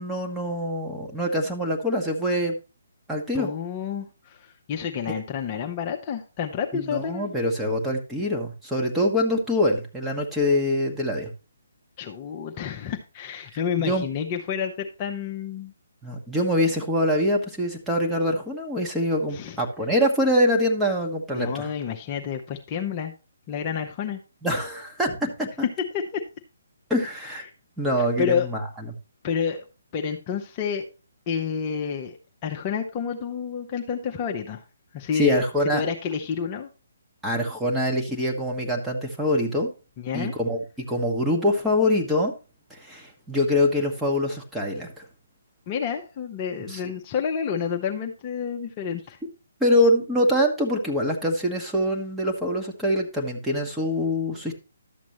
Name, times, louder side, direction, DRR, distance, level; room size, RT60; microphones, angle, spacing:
voice 1, 0.0-2.5 3.1-3.5 5.1-5.2 6.7-11.3 13.8-14.1 16.0-21.7 24.4-25.5 26.9-27.5 27.8-28.6 35.1-35.8 37.2-39.7 40.1-42.3 42.7-44.9 46.7-46.8 49.6-54.6, left 1 dB, 5° right, -1 dB, 1.3 m, -24 dB
voice 2, 3.3-7.3 12.0-15.7 19.3-19.6 21.3-23.1 23.5-24.2 25.9-26.2 28.2-28.5 29.2-29.6 29.9-30.9 31.3-34.6 34.9-36.7 40.0-40.3 45.7-49.2, left 7 dB, 30° left, 2 dB, 0.9 m, -29 dB
11.5 x 7.4 x 3.0 m, 0.32 s
figure-of-eight pair, 135°, 0 cm